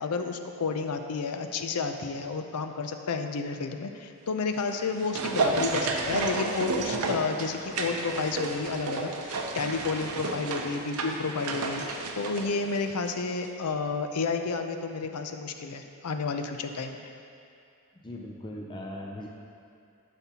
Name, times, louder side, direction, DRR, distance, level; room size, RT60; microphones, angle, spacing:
voice 1, 0.0-17.1, left 4 dB, 90° left, 6 dB, 0.5 m, -31 dB
sound 1, 4.6-13.2 13.4-13.5, right 3 dB, 85° right, 0.7 m, -32 dB
voice 2, 18.0-19.3, left 1 dB, 20° left, -1 dB, 0.4 m, -39 dB
11.5 x 5.8 x 2.9 m, 2.5 s
head